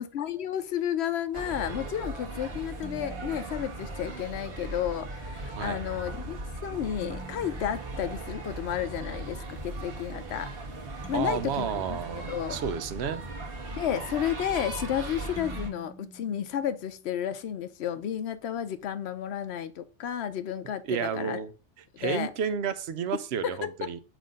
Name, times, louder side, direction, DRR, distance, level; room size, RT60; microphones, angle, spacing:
voice 1, 0.0-10.5 11.1-12.0 12.3-12.6 13.7-21.4 21.9-22.3 23.4-23.5 23.8-23.9, left 10 dB, 65° left, 0.8 m, -32 dB
sound 1, 1.3-15.7, right 2 dB, 50° right, 1.4 m, -38 dB
sound 2, 2.8-4.5 7.0-9.0 11.0-13.2 15.4-17.4, right 1 dB, 30° left, 0.6 m, -50 dB
voice 2, 11.1-13.2 20.9-21.5 22.0-24.0, right 7 dB, 70° right, 0.8 m, -31 dB
7.4 x 2.6 x 5.1 m
omnidirectional pair, 1.2 m